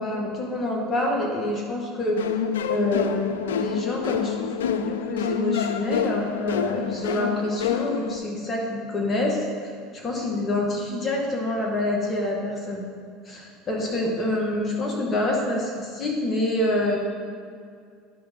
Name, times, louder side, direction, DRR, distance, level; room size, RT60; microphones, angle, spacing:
voice 1, 0.0-2.2 2.7-12.8 13.3-17.0, left 1 dB, 30° left, -1 dB, 2.0 m, -27 dB
sound 1, 2.2-8.2, left 8 dB, 90° left, 0.3 m, -28 dB
11.0 x 5.2 x 3.8 m, 2.2 s
hypercardioid pair, 90°, 0 cm